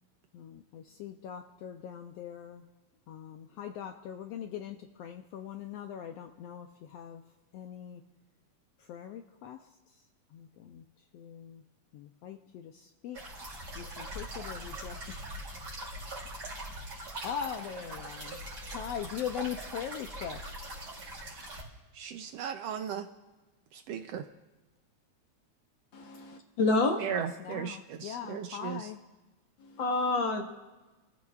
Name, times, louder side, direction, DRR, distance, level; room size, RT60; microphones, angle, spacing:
voice 1, 0.3-2.7 3.1-7.2 7.5-8.0 8.9-9.6 10.3-10.8 11.1-11.6 11.9-13.2 13.7-15.3 17.2-18.4 18.7-20.5 27.1-29.0, left 9 dB, 75° left, 5 dB, 1.6 m, -41 dB
sound 1, 13.1-21.6, right 1 dB, 45° right, 4.0 m, -42 dB
voice 2, 21.9-23.1 23.7-24.3 27.0-28.8, right 8 dB, 75° right, 7 dB, 1.5 m, -36 dB
voice 3, 25.9-27.0 29.6-30.4, left 3 dB, 45° left, 1 dB, 2.1 m, -28 dB
28.0 x 14.5 x 2.4 m, 1.2 s
omnidirectional pair, 3.3 m